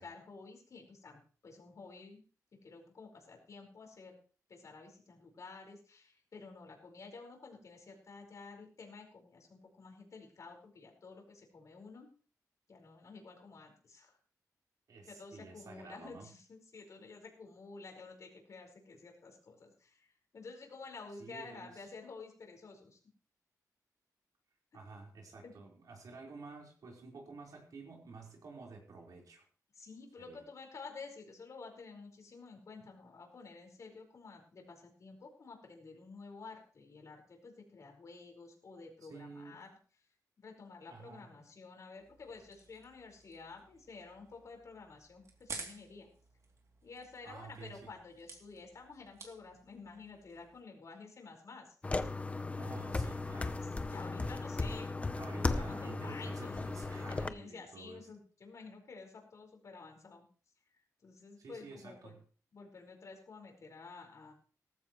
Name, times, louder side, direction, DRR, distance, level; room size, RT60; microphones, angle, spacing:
voice 1, 0.0-2.2 2.5-4.2 4.5-12.1 12.7-14.1 15.1-23.0 25.4-25.5 29.7-39.7 40.4-46.1 46.8-51.7 53.8-56.7 57.1-60.2 61.0-62.2 62.5-64.3, left 4 dB, 55° left, 2 dB, 4.8 m, -51 dB
voice 2, 14.9-16.3 21.2-21.9 24.7-29.5 30.3-30.4 39.0-39.6 40.9-41.5 47.2-47.9 52.5-53.6 55.1-58.1 61.4-62.2, right 4 dB, 70° right, -1 dB, 4.4 m, -50 dB
sound 1, 42.0-50.6, right 4 dB, 55° right, 2.9 m, -53 dB
sound 2, 51.8-57.3, left 3 dB, 20° left, 0.8 m, -36 dB
18.5 x 15.0 x 3.1 m, 0.40 s
wide cardioid pair, 155°, 6 cm